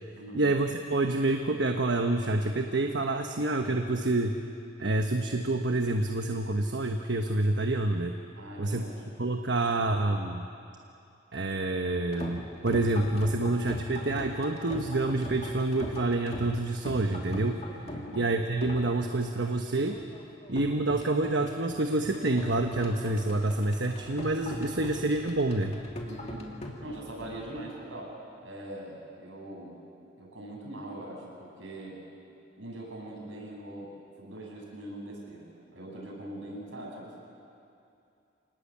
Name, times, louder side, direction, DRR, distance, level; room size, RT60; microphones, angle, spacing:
voice 1, 0.3-4.4 4.8-8.2 8.6-8.8 9.2-10.5 11.3-17.7 18.1-20.0 20.5-25.8, right 2 dB, 65° right, 4 dB, 1.2 m, -28 dB
voice 2, 8.3-9.0 17.8-18.2 26.0-28.1 28.4-29.8 30.2-32.0 32.5-33.9 34.2-37.2, right 1 dB, 80° right, -2 dB, 7.9 m, -42 dB
sound 1, 11.9-27.6, left 1 dB, 35° left, 2.6 m, -41 dB
27.5 x 19.5 x 8.6 m, 2.6 s
head